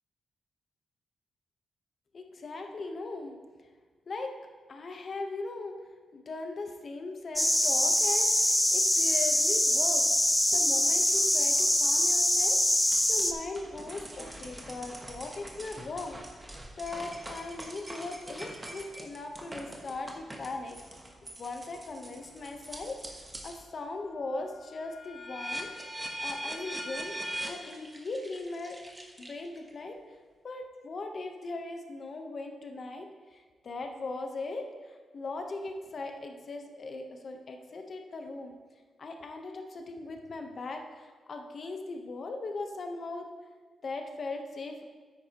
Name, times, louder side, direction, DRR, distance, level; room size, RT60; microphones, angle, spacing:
voice 1, 2.1-3.4 4.1-4.3 4.7-5.7 6.1-10.0 10.5-16.2 16.8-20.8 21.4-28.8 29.2-30.0 30.4-38.5 39.0-43.3 43.8-44.8, left 3 dB, 45° left, 4 dB, 0.9 m, -39 dB
sound 1, 7.4-13.3, left 1 dB, 5° left, 0.5 m, -24 dB
sound 2, 12.9-23.6 24.0-29.7, right 1 dB, 15° right, 1.1 m, -42 dB
9.5 x 8.7 x 2.9 m, 1.4 s
wide cardioid pair, 135°, 0 cm